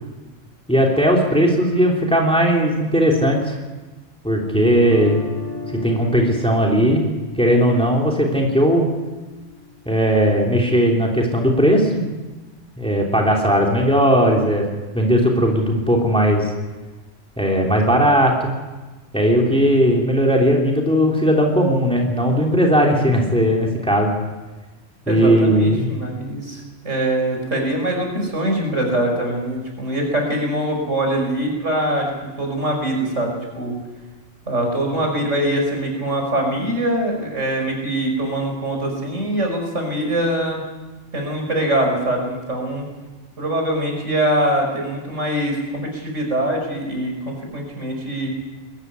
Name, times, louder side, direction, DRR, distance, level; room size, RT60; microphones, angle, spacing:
voice 1, 0.7-3.6 4.2-5.2 5.7-7.0 7.4-8.8 9.8-12.0 12.8-14.6 14.9-16.5 17.4-18.5 19.1-24.1 25.1-25.9, equal, 5° left, -1 dB, 3.2 m, -17 dB
Guitar, 4.8-10.8, left 4 dB, 40° right, 3.3 m, -35 dB
voice 2, 25.1-33.8 34.5-40.6 41.1-42.9 43.4-48.3, right 1 dB, 70° right, 2 dB, 5.9 m, -23 dB
21.5 x 14.5 x 9.7 m, 1.2 s
omnidirectional pair, 1.3 m